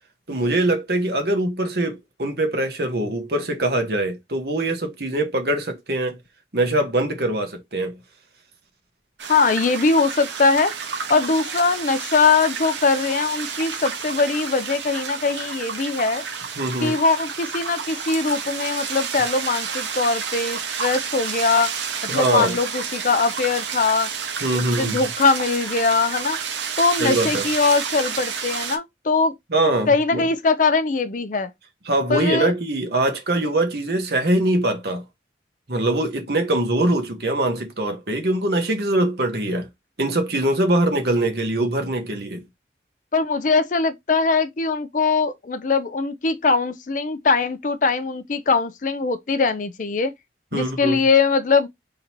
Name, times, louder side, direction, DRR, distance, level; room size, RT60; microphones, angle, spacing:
voice 1, 0.3-6.2 6.5-7.9 16.6-17.0 22.1-22.5 24.4-25.0 27.0-27.5 29.5-30.2 31.9-35.0 35.7-39.7 40.0-42.4 50.5-51.0, right 1 dB, 55° right, 1.2 m, -23 dB
sound 1, 9.2-28.8, right 6 dB, 75° right, 0.9 m, -30 dB
voice 2, 9.3-10.7 11.1-16.2 16.8-21.7 22.0-24.1 24.5-26.4 26.8-29.3 29.9-31.5 32.1-32.5 43.1-50.1 50.5-51.7, left 4 dB, 45° left, 0.5 m, -21 dB
3.8 x 2.8 x 4.4 m
head